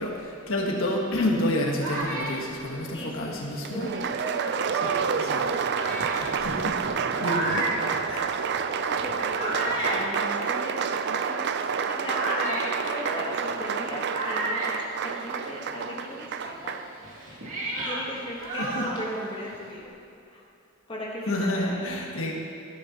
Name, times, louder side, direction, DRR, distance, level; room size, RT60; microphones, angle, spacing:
voice 1, 0.0-3.9 4.7-5.6 6.2-6.8 7.2-7.7 8.1-8.3 18.6-18.9 21.3-22.3, left 1 dB, 80° left, -1 dB, 1.3 m, -29 dB
sound 1, 1.3-4.4 5.0-5.1 5.6-15.7 15.9-19.7, right 1 dB, 85° right, 2.6 m, -34 dB
voice 2, 2.9-4.7 8.8-14.6 15.0-16.8 17.3-17.4 17.8-19.9 20.3-20.4 20.9-21.8, left 1 dB, 25° left, -3 dB, 1.3 m, -37 dB
Applause, 3.6-16.9, right 6 dB, 55° right, 0.4 m, -29 dB
12.0 x 10.5 x 2.9 m, 2.7 s
head